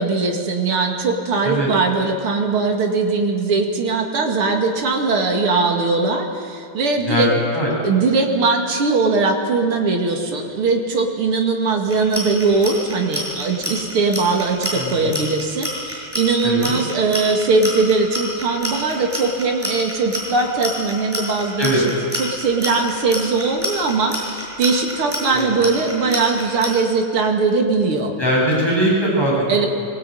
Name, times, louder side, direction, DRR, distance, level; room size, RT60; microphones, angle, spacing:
voice 1, 0.0-7.3 7.8-28.1 29.5-29.7, right 4 dB, 80° right, 2 dB, 3.1 m, -20 dB
Clock, 11.9-26.7, equal, 5° right, 6.5 m, -27 dB
voice 2, 14.7-15.1 16.4-16.7 21.6-21.8 25.3-25.5 28.2-29.7, equal, 10° left, -5 dB, 8.0 m, -20 dB
23.5 x 19.5 x 9.2 m, 2.3 s
omnidirectional pair, 2.4 m